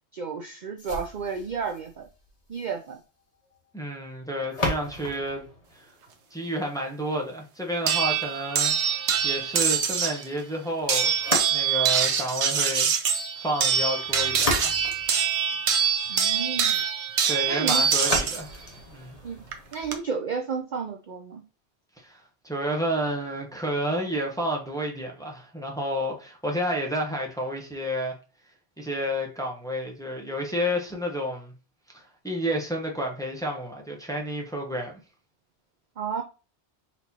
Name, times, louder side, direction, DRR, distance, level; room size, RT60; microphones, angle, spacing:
voice 1, 0.1-2.1 2.5-3.0 16.1-16.8 17.5-17.8 19.2-19.4 19.7-21.4 36.0-36.2, right 5 dB, 55° right, 0.5 m, -32 dB
sound 1, 0.8-6.8 11.1-12.0 14.0-16.0 18.0-20.0, left 2 dB, 35° left, 1.2 m, -35 dB
voice 2, 3.7-5.5 5.7-5.9 6.3-8.7 9.2-11.1 11.5-12.9 13.4-14.8 17.3-18.6 18.9-19.2 22.0-28.2 28.8-31.5 31.9-35.0, equal, 5° left, 0.8 m, -30 dB
sound 2, 7.9-10.2 10.9-18.4 19.5-19.9, right 7 dB, 80° right, 1.0 m, -24 dB
4.3 x 4.1 x 2.8 m
omnidirectional pair, 1.1 m